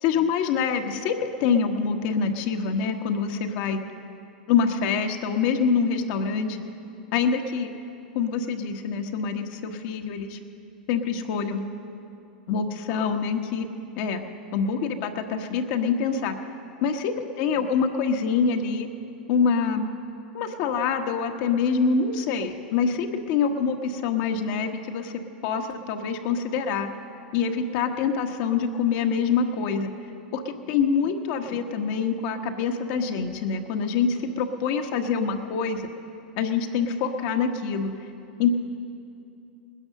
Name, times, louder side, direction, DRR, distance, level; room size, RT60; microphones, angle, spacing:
voice 1, 0.0-1.1 1.4-3.8 4.5-6.6 7.1-7.7 8.1-10.4 10.9-11.6 12.5-13.7 14.0-14.2 14.5-16.3 16.8-17.1 17.4-18.9 19.3-19.9 20.3-25.1 25.4-26.9 27.3-29.9 30.3-35.8 36.4-37.9 38.4-38.5, left 6 dB, 55° left, 5 dB, 1.3 m, -25 dB
20.0 x 10.5 x 6.5 m, 2.6 s
hypercardioid pair, 105°, 5 cm